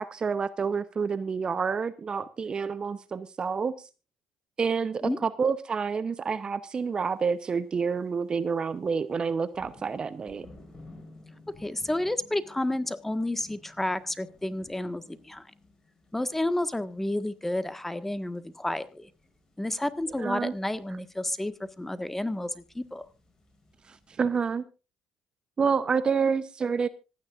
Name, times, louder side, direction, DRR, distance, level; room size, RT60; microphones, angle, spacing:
voice 1, 0.0-3.7 4.6-10.5 20.2-20.5 23.9-24.6 25.6-26.9, right 5 dB, 35° right, 14 dB, 0.8 m, -28 dB
sound 1, 7.1-7.4 7.8-8.1 8.4-24.2, left 2 dB, 25° left, 5.6 m, -56 dB
voice 2, 11.6-15.5 16.1-19.1 19.6-23.0, left 1 dB, 10° left, 12 dB, 1.5 m, -31 dB
26.0 x 9.7 x 2.5 m, 0.30 s
hypercardioid pair, 55°, 2 cm